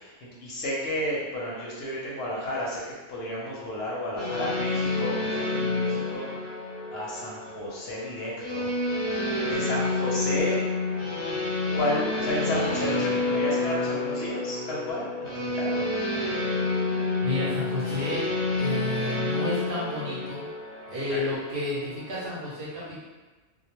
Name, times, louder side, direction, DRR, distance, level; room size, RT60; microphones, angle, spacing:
voice 1, 0.0-2.8 3.1-6.3 6.9-8.7 9.4-10.6 11.7-16.0 21.1-21.2, equal, 65° left, -5 dB, 0.8 m, -32 dB
sound 1, 4.2-22.2, left 2 dB, 35° left, 0.5 m, -29 dB
voice 2, 17.2-18.3 18.6-20.5 20.9-23.0, left 1 dB, 55° right, -7 dB, 0.8 m, -31 dB
2.2 x 2.1 x 3.0 m, 1.2 s
omnidirectional pair, 1.2 m